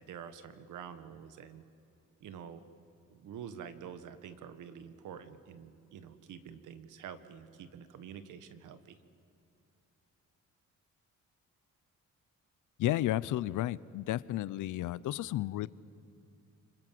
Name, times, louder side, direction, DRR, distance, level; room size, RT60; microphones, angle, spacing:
voice 1, 0.0-1.6 2.2-2.6 3.1-9.0, right 8 dB, 80° right, 11 dB, 1.7 m, -47 dB
voice 2, 12.8-15.7, left 14 dB, 80° left, 19 dB, 0.7 m, -32 dB
29.5 x 26.0 x 7.7 m, 2.6 s
cardioid pair, 170°, 30 cm